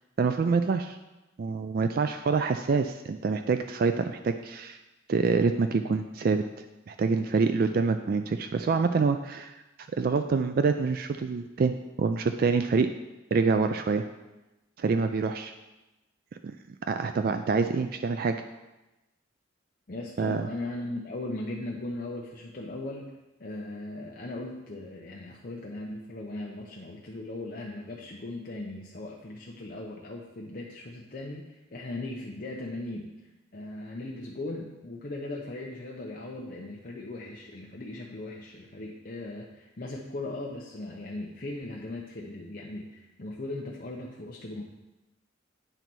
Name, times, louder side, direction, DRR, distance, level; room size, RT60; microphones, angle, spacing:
voice 1, 0.2-1.0 1.4-4.8 5.1-6.4 6.9-9.6 9.9-12.9 13.3-14.0 14.8-15.5 16.4-16.5 16.9-18.4 20.2-20.5, right 4 dB, 45° right, 8 dB, 0.3 m, -26 dB
voice 2, 19.9-23.1 23.4-33.2 33.5-44.6, left 2 dB, 45° left, -2 dB, 0.7 m, -38 dB
9.0 x 4.0 x 6.1 m, 1.0 s
head